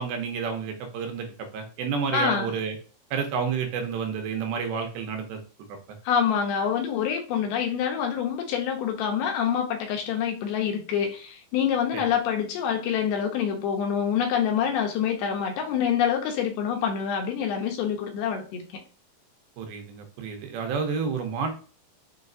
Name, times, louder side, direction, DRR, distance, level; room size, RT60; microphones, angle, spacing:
voice 1, 0.0-2.8 3.1-5.4 5.9-6.0 11.9-12.0 19.6-21.5, right 6 dB, 85° right, 2.7 m, -30 dB
voice 2, 2.1-2.5 6.0-18.7, left 8 dB, 85° left, 2.7 m, -26 dB
6.7 x 2.4 x 2.5 m
omnidirectional pair, 4.4 m